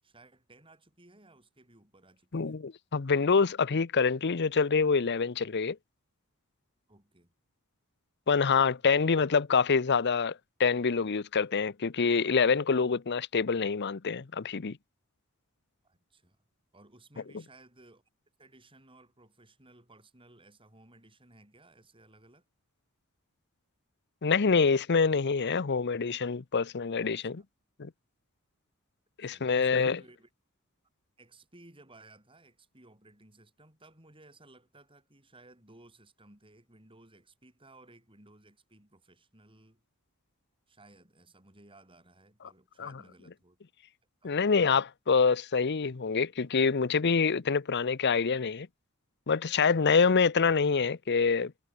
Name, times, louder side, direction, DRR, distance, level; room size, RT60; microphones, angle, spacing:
voice 1, 0.0-2.6 6.9-7.3 8.8-8.9 15.8-16.4 16.7-18.0 18.4-22.4 29.2-30.3 31.2-39.8 40.7-43.6 44.2-44.4, right 2 dB, 25° right, 7.9 m, -58 dB
voice 2, 2.3-5.8 8.3-14.8 24.2-27.4 27.8-27.9 29.2-30.0 42.8-42.9 44.2-48.7 49.3-51.5, left 5 dB, 55° left, 0.7 m, -26 dB
head